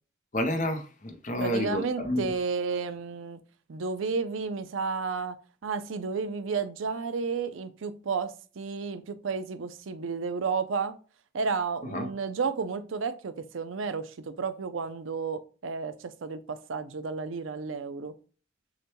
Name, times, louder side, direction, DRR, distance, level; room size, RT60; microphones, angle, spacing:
voice 1, 0.3-2.2 11.9-12.1, left 1 dB, 40° left, 0.7 m, -29 dB
voice 2, 1.4-3.4 3.7-5.4 5.6-11.0 11.3-18.1, right 5 dB, 85° right, 0.5 m, -32 dB
6.4 x 2.2 x 2.9 m
head